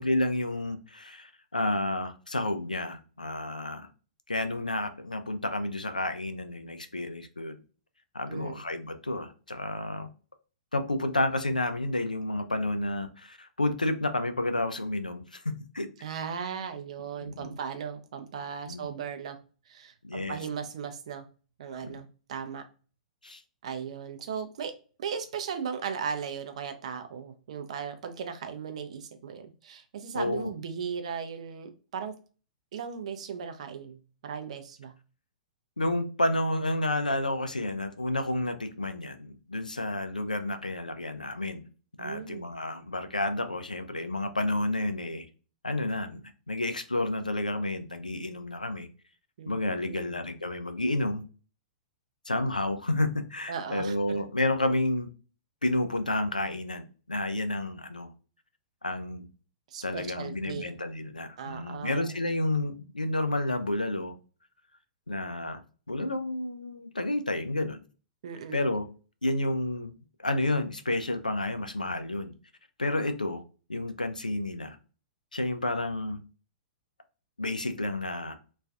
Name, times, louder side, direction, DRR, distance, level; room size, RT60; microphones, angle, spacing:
voice 1, 0.0-3.9 4.3-7.6 8.1-10.1 10.7-15.9 17.2-17.5 18.7-18.9 20.0-20.4 21.8-22.0 23.2-23.4 30.1-30.5 35.8-41.7 42.0-45.3 45.6-48.9 49.5-51.2 52.3-55.1 55.6-58.1 58.8-59.3 59.8-64.1 65.1-65.6 65.9-67.8 68.5-68.8 69.2-69.9 70.2-72.3 72.8-73.4 73.7-74.8 75.3-76.2 77.4-78.4, left 1 dB, 85° left, 8 dB, 0.3 m, -30 dB
voice 2, 8.3-8.6 16.0-19.4 19.7-21.3 21.6-22.6 23.6-24.7 25.0-32.1 32.7-34.9 42.0-42.4 49.4-50.2 53.5-54.0 59.7-60.7 61.4-62.1 68.2-68.7, right 7 dB, 55° right, 8 dB, 0.4 m, -37 dB
2.3 x 2.2 x 2.4 m, 0.37 s
figure-of-eight pair, 110°, 4 cm